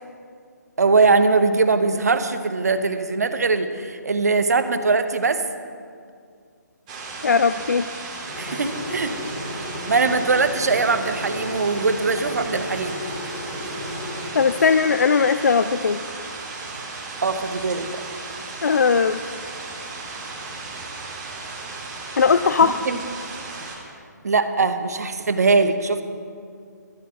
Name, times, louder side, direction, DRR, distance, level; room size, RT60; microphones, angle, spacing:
voice 1, 0.8-5.4 8.4-9.1 9.9-12.9 17.2-18.0 22.6-23.0 24.2-26.0, right 4 dB, 60° right, 10 dB, 1.0 m, -21 dB
sound 1, 6.9-23.8, right 3 dB, 25° right, 2.1 m, -35 dB
voice 2, 7.2-7.8 14.3-16.0 18.6-19.4 22.2-22.8, left 5 dB, 60° left, 11 dB, 0.4 m, -19 dB
sound 2, 8.3-15.0, left 1 dB, 30° left, 2.1 m, -34 dB
13.0 x 7.3 x 8.2 m, 2.3 s
figure-of-eight pair, 140°, 10 cm